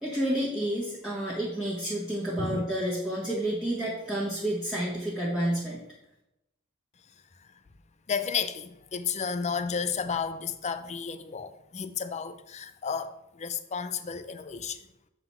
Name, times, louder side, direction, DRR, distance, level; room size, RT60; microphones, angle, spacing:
voice 1, 0.0-5.8, right 1 dB, 5° right, 1.5 m, -30 dB
voice 2, 8.1-14.8, left 6 dB, 30° left, 0.5 m, -32 dB
7.8 x 4.0 x 5.7 m
head